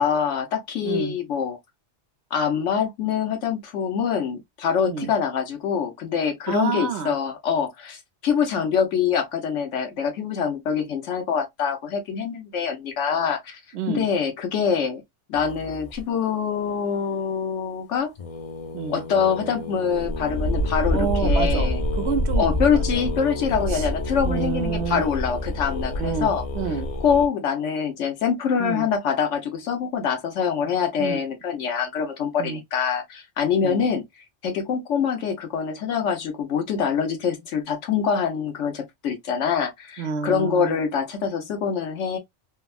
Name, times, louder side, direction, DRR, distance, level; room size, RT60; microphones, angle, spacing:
voice 1, 0.0-1.6 2.3-13.6 13.9-15.0 15.3-18.1 18.9-21.8 22.4-26.4 27.0-34.0 34.4-42.2, left 7 dB, 85° left, 1.1 m, -25 dB
voice 2, 0.8-1.1 4.9-5.1 6.5-7.1 13.7-14.1 18.7-19.0 20.9-22.5 22.7-23.1 23.7-23.9 24.3-25.0 26.0-26.9 28.6-28.9 31.0-31.2 32.4-32.6 33.6-33.9 40.0-40.8, right 7 dB, 70° right, 0.9 m, -28 dB
sound 1, 15.3-16.0 18.2-27.3, left 1 dB, 55° left, 0.4 m, -27 dB
3.4 x 2.1 x 2.3 m
omnidirectional pair, 1.2 m